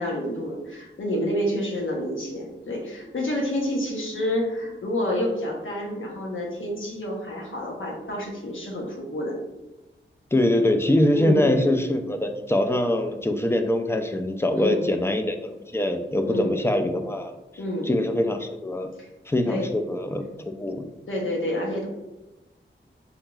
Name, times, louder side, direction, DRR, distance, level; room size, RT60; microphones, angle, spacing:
voice 1, 0.0-9.3 11.1-11.5 14.5-14.9 16.2-16.6 17.6-17.9 19.0-19.1 19.5-19.7 21.1-21.9, equal, 75° left, -1 dB, 0.9 m, -28 dB
voice 2, 10.3-17.3 17.9-18.9 19.3-20.2 20.6-20.9, left 1 dB, 10° left, 5 dB, 0.4 m, -23 dB
3.6 x 2.9 x 2.3 m, 1.1 s
wide cardioid pair, 80°, 21 cm